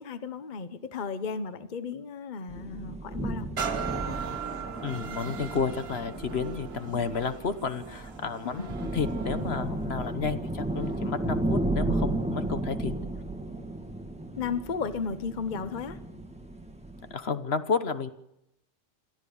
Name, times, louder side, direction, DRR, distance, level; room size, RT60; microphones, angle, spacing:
voice 1, 0.0-3.5 8.4-8.7 14.4-16.0, left 5 dB, 45° left, 12 dB, 1.0 m, -34 dB
sound 1, 2.5-17.1, right 1 dB, 5° right, 1.7 m, -34 dB
sound 2, 3.6-11.2 11.7-11.8, right 6 dB, 60° right, 1.4 m, -39 dB
voice 2, 4.8-12.9 17.1-18.1, left 5 dB, 60° left, 11 dB, 1.3 m, -31 dB
28.0 x 13.5 x 7.1 m, 0.83 s
omnidirectional pair, 1.2 m